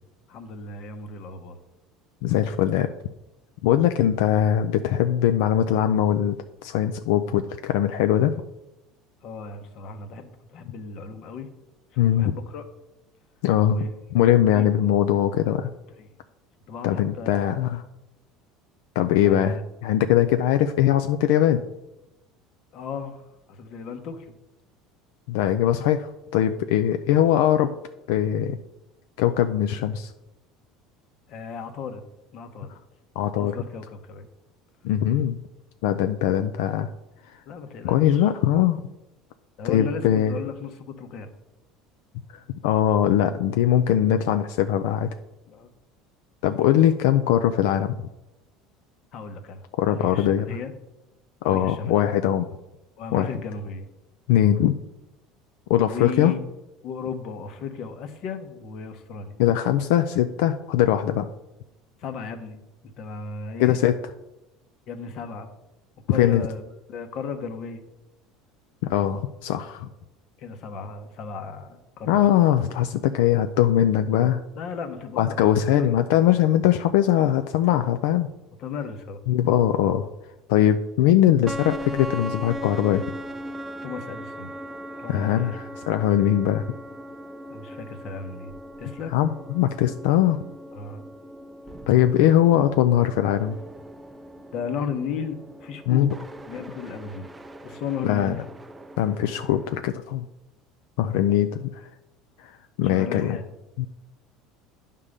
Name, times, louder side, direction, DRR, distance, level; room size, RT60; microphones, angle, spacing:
voice 1, 0.3-1.6 9.2-11.5 12.1-12.6 13.7-13.9 14.5-14.6 15.4-15.6 16.0-16.1 16.7-17.4 19.2-19.6 22.7-24.3 27.1-27.2 31.3-32.0 32.3-32.7 33.3-34.3 37.5-38.2 39.6-41.3 45.5-45.7 49.1-49.6 49.9-50.7 51.4-52.0 53.0-53.9 55.8-56.4 56.8-59.4 62.0-62.6 63.0-63.8 64.9-65.5 66.1-66.6 66.9-67.8 70.4-72.3 74.6-75.9 78.6-79.2 83.8-84.5 84.9-85.6 87.5-88.5 88.8-89.1 90.7-91.0 91.7-91.8 94.5-96.1 96.5-97.3 97.6-98.5 102.8-103.4, left 5 dB, 50° left, 8 dB, 1.1 m, -35 dB
voice 2, 2.2-2.9 3.6-6.4 6.6-8.3 12.0-12.3 13.4-13.8 14.1-15.7 16.8-17.8 19.0-21.6 25.3-27.7 28.1-28.6 29.2-30.1 33.2-33.6 34.8-35.4 35.8-36.9 37.3-37.4 37.8-38.8 39.6-40.4 42.3-45.1 46.4-48.0 49.8-50.5 51.4-52.5 53.1-53.3 54.3-54.8 55.7-56.3 59.4-61.3 63.6-64.0 66.2-66.5 68.8-69.9 72.1-74.4 75.2-78.3 79.3-80.1 80.5-83.0 85.1-86.6 89.1-90.4 91.9-93.6 95.9-96.1 98.0-98.4 99.0-100.3 101.0-101.9 102.4-103.4 103.8-103.9, left 11 dB, 80° left, 8 dB, 0.4 m, -21 dB
sound 1, 81.5-99.8, equal, 10° right, 0.4 m, -39 dB
9.9 x 3.7 x 6.6 m, 0.95 s
cardioid pair, 140°, 0 cm